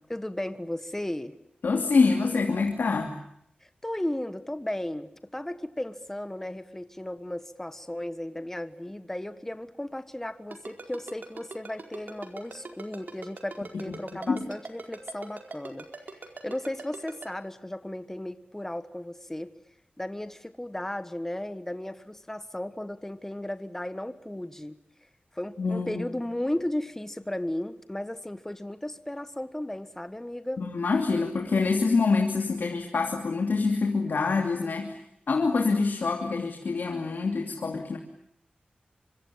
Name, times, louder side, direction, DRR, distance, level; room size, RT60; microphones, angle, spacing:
voice 1, 0.1-1.3 3.6-19.5 20.0-24.8 25.3-30.6, left 1 dB, 10° left, 11 dB, 1.4 m, -35 dB
voice 2, 1.6-3.1 13.9-14.0 14.3-14.4 25.6-26.0 30.6-35.0 35.3-38.0, left 4 dB, 85° left, 2 dB, 2.8 m, -26 dB
Ringtone, 10.5-17.3, right 4 dB, 70° right, 4.4 m, -41 dB
25.5 x 25.0 x 8.7 m, 0.74 s
wide cardioid pair, 110°, 3 cm